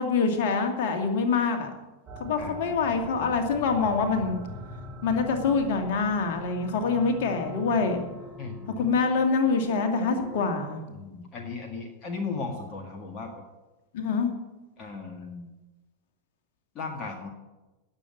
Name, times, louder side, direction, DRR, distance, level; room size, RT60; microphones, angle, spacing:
voice 1, 0.0-1.7 2.2-4.4 5.0-8.0 8.8-10.8 13.9-14.3, left 4 dB, 50° left, 4 dB, 2.4 m, -25 dB
sound 1, 2.1-10.5, equal, 15° right, 5.7 m, -43 dB
voice 2, 2.4-2.8 8.4-8.9 10.9-13.4 14.8-15.5 16.8-17.3, left 4 dB, 30° left, 3 dB, 1.8 m, -36 dB
17.5 x 7.5 x 8.5 m, 1.1 s
figure-of-eight pair, 90°, 0 cm